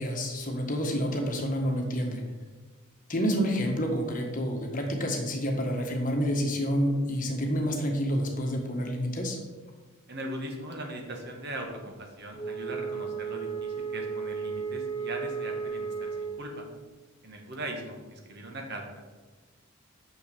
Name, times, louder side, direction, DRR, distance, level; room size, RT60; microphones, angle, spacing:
voice 1, 0.0-2.2 3.1-9.4, equal, 35° left, 2 dB, 1.3 m, -28 dB
voice 2, 10.1-16.7 17.2-19.0, right 1 dB, 50° right, 2 dB, 1.6 m, -39 dB
Wind instrument woodwind instrument, 12.3-16.5, right 5 dB, 20° left, 0.5 m, -34 dB
6.6 x 6.5 x 6.7 m, 1.3 s
head